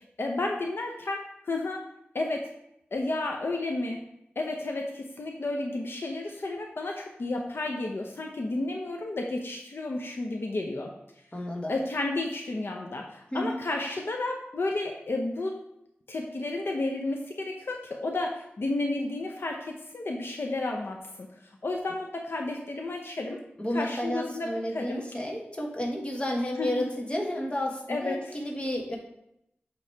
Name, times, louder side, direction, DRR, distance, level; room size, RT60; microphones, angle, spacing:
voice 1, 0.2-1.8 2.1-2.5 2.9-4.0 4.4-10.9 11.7-15.6 16.1-21.3 21.6-23.4 23.7-24.5 24.7-25.0 26.6-26.8 27.9-28.1, left 2 dB, 70° left, 1 dB, 0.7 m, -32 dB
voice 2, 11.3-11.7 13.3-13.6 23.6-29.0, left 1 dB, 25° left, 0 dB, 1.3 m, -31 dB
8.4 x 3.1 x 4.5 m, 0.80 s
wide cardioid pair, 85°, 4 cm